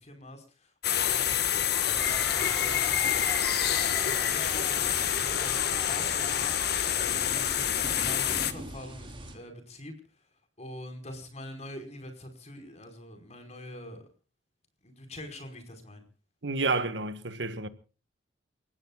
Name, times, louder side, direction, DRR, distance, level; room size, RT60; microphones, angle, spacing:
voice 1, 0.0-3.1 3.8-6.5 6.9-10.0 10.6-14.1 14.8-16.0, left 1 dB, 35° left, 5.0 m, -44 dB
sound 1, 0.8-8.5, left 10 dB, 60° left, 1.6 m, -27 dB
Crowd, 1.5-7.6, equal, ahead, 6.4 m, -43 dB
sound 2, 1.9-9.3, right 1 dB, 30° right, 4.0 m, -44 dB
voice 2, 16.4-17.7, right 3 dB, 70° right, 1.6 m, -30 dB
29.5 x 16.0 x 2.4 m
head